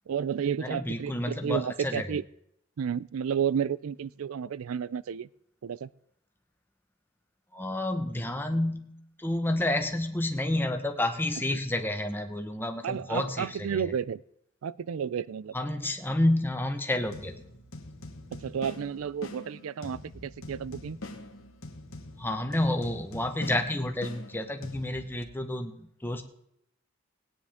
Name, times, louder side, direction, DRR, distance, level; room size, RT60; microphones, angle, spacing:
voice 1, 0.1-2.2 2.8-5.3 5.6-5.9 11.5-11.6 12.8-14.2 14.6-15.5 18.3-21.0, right 7 dB, 85° right, 20 dB, 0.4 m, -32 dB
voice 2, 0.6-2.2 7.5-8.9 9.2-13.9 15.5-17.3 22.2-26.2, left 1 dB, 10° left, 5 dB, 1.1 m, -30 dB
sound 1, 17.0-25.2, left 2 dB, 75° left, 1.6 m, -44 dB
19.5 x 9.6 x 3.6 m, 0.75 s
head